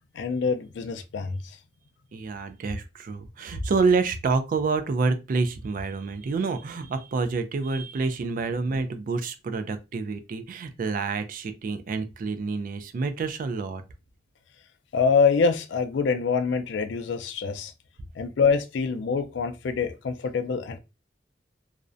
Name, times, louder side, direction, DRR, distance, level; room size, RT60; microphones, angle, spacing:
voice 1, 0.2-1.4 14.9-17.7 18.2-20.8, left 5 dB, 75° left, 0.4 m, -25 dB
voice 2, 2.1-13.8, right 4 dB, 50° right, 0.3 m, -28 dB
2.4 x 2.1 x 2.5 m
head